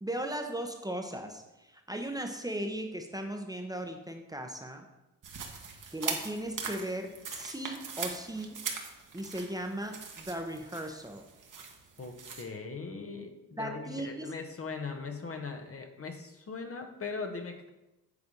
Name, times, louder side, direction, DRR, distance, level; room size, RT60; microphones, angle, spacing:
voice 1, 0.0-4.9 5.9-8.7 9.1-11.3 13.6-14.4, right 1 dB, 10° right, 4 dB, 0.8 m, -37 dB
sound 1, 5.2-12.4, right 5 dB, 55° right, 1.2 m, -41 dB
voice 2, 12.0-17.7, left 4 dB, 35° left, 5 dB, 0.9 m, -40 dB
8.2 x 3.4 x 5.3 m, 0.99 s
cardioid pair, 65°, 38 cm